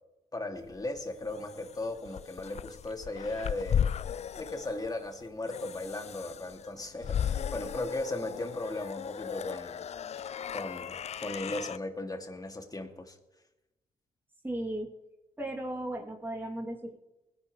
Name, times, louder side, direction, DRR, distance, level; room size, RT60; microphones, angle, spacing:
voice 1, 0.3-3.9 4.4-9.8 10.5-13.2, left 2 dB, 25° left, 4 dB, 2.7 m, -37 dB
sound 1, 0.7-11.8, left 8 dB, 45° left, 0.4 m, -36 dB
voice 2, 14.4-14.9 15.4-17.0, right 1 dB, 15° right, -2 dB, 3.1 m, -36 dB
21.0 x 11.0 x 3.3 m, 0.98 s
hypercardioid pair, 50°, 16 cm